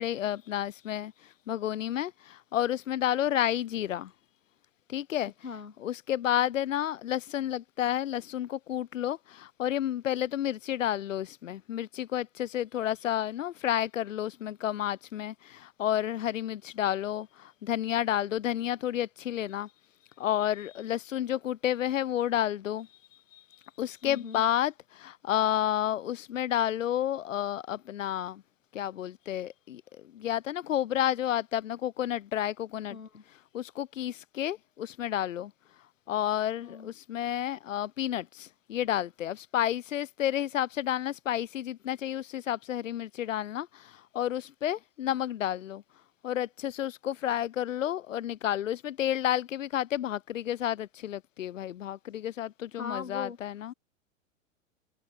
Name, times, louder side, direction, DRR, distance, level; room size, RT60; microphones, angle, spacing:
voice 1, 0.0-4.1 4.9-5.3 5.8-19.7 20.2-22.9 23.3-28.4 28.7-29.8 30.1-33.0 33.3-35.5 36.1-45.8 46.2-53.7, left 11 dB, 70° left, 2.7 m, -31 dB
voice 2, 24.0-24.4 32.9-33.2 36.6-36.9 52.8-53.4, left 5 dB, 90° left, 3.8 m, -39 dB
hypercardioid pair, 105°, 40 cm